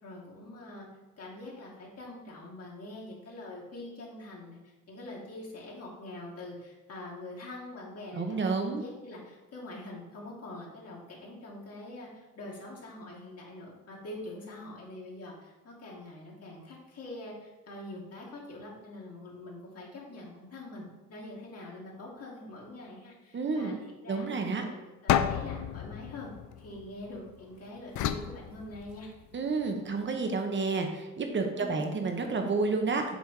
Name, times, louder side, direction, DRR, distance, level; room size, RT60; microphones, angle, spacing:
voice 1, 0.0-0.9 1.2-24.3 24.6-26.3 26.6-29.1 31.5-31.9, left 2 dB, 55° left, -3 dB, 2.3 m, -44 dB
voice 2, 8.1-8.8 23.3-23.7 24.1-24.6 29.3-33.0, right 4 dB, 40° right, 4 dB, 1.2 m, -30 dB
sound 1, 25.1-27.3 28.0-29.3, left 10 dB, 75° left, 0.6 m, -31 dB
8.0 x 3.4 x 4.9 m, 1.1 s
cardioid pair, 90°, 30 cm